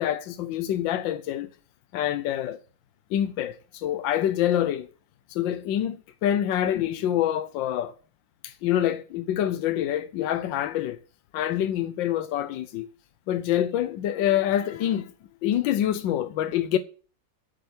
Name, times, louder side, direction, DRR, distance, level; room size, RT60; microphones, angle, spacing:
voice 1, 0.0-1.5 1.9-2.6 3.1-4.9 5.3-7.9 8.4-11.0 11.3-12.9 13.3-15.1 15.4-16.8, left 11 dB, 80° left, 1.4 m, -26 dB
8.7 x 6.9 x 7.9 m
omnidirectional pair, 2.1 m